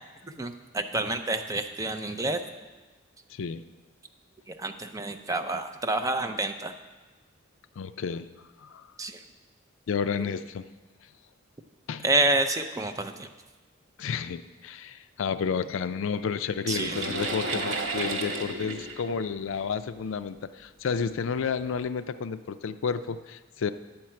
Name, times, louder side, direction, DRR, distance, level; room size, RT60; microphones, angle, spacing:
voice 1, 0.2-2.4 4.6-6.7 9.0-9.2 10.2-10.3 12.0-13.3 16.7-16.9, right 2 dB, 15° right, 7 dB, 0.4 m, -28 dB
voice 2, 3.3-3.6 7.8-8.3 8.6-8.9 9.9-10.6 11.9-12.0 14.0-23.7, left 6 dB, 70° left, 13 dB, 0.4 m, -31 dB
sound 1, 16.7-20.0 20.9-21.0 21.6-21.7, right 2 dB, 70° right, 1.0 m, -32 dB
9.9 x 4.5 x 7.4 m, 1.3 s
head